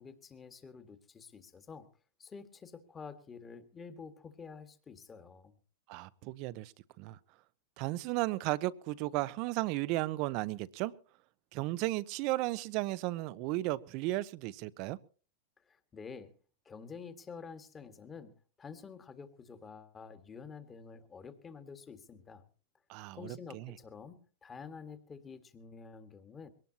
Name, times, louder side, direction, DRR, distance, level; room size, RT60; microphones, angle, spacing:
voice 1, 0.0-1.9 2.2-5.5 15.7-16.3 16.7-22.4 23.1-26.5, left 5 dB, 20° left, 10 dB, 1.8 m, -49 dB
voice 2, 5.9-6.7 7.0-7.2 7.8-10.9 11.5-15.0 22.9-23.7, right 18 dB, 50° right, 18 dB, 0.7 m, -34 dB
22.0 x 18.5 x 2.9 m, 0.38 s
hypercardioid pair, 120°, 0 cm